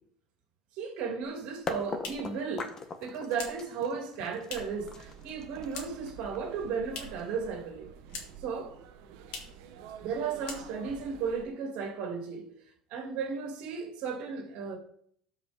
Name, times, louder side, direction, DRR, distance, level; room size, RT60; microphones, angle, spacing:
voice 1, 0.7-2.7 3.0-7.9 8.4-8.7 10.0-12.5 12.9-14.8, right 5 dB, 60° right, 2.2 m, -35 dB
sound 1, 1.4-4.9 5.2-6.2 6.4-7.3 7.6-8.5 8.8-8.9 9.2-9.6 10.0-10.1 10.4-11.0, left 4 dB, 60° left, 2.0 m, -44 dB
sound 2, 1.7-7.5, left 4 dB, 25° left, 0.8 m, -41 dB
sound 3, 4.5-11.5, right 8 dB, 80° right, 1.0 m, -49 dB
12.5 x 5.0 x 3.5 m
cardioid pair, 160°, 2 cm